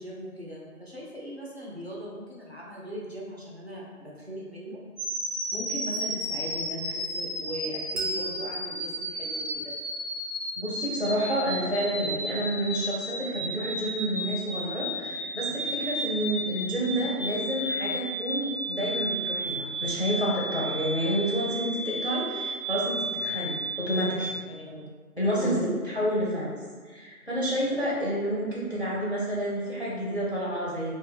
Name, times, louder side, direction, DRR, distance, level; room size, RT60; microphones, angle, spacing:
voice 1, 0.0-4.8 5.5-9.7 15.5-15.6 24.5-24.9 25.4-25.6, equal, 45° right, -5 dB, 0.4 m, -39 dB
sound 1, 5.0-24.3, right 1 dB, ahead, 0.7 m, -33 dB
Bell, 7.9-11.0, equal, 85° right, 0.8 m, -39 dB
voice 2, 10.6-24.3 25.2-26.5 26.9-30.9, equal, 45° left, -6 dB, 0.4 m, -29 dB
2.1 x 2.1 x 3.2 m, 1.5 s
figure-of-eight pair, 175°, 45 cm